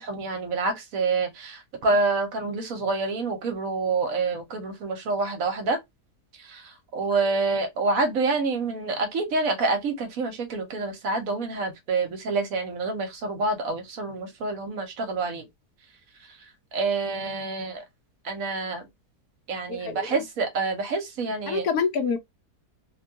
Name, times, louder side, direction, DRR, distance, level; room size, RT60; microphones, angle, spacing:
voice 1, 0.0-5.8 6.4-15.5 16.7-17.8 18.2-18.9 19.5-21.7, right 3 dB, 65° right, 1.1 m, -27 dB
voice 2, 19.7-20.2 21.5-22.2, left 5 dB, 75° left, 1.1 m, -27 dB
2.9 x 2.2 x 2.6 m
omnidirectional pair, 1.7 m